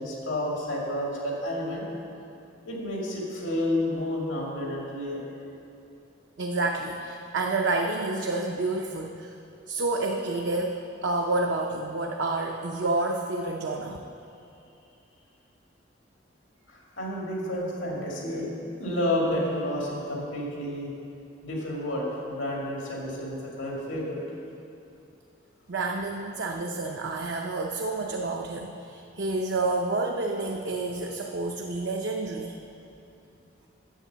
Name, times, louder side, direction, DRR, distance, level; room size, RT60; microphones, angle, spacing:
voice 1, 0.0-1.9 2.7-5.2 16.7-18.5 18.8-20.9 21.4-24.2, left 1 dB, 85° left, -3 dB, 2.2 m, -30 dB
voice 2, 6.4-9.4 9.7-14.0 25.7-32.6, right 2 dB, 65° right, 1 dB, 0.6 m, -29 dB
9.0 x 7.5 x 6.8 m, 2.7 s
head